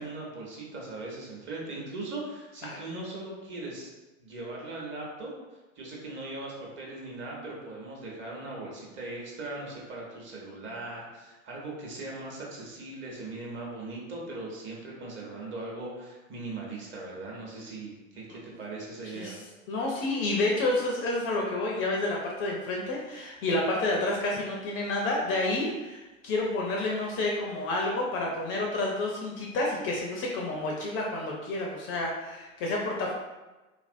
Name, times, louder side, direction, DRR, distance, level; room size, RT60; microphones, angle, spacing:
voice 1, 0.0-3.9 4.2-5.3 5.8-19.4, right 2 dB, 30° right, -3 dB, 0.8 m, -39 dB
voice 2, 19.7-33.1, left 2 dB, 30° left, -1 dB, 0.5 m, -29 dB
2.8 x 2.5 x 2.5 m, 1.1 s
hypercardioid pair, 90°, 41 cm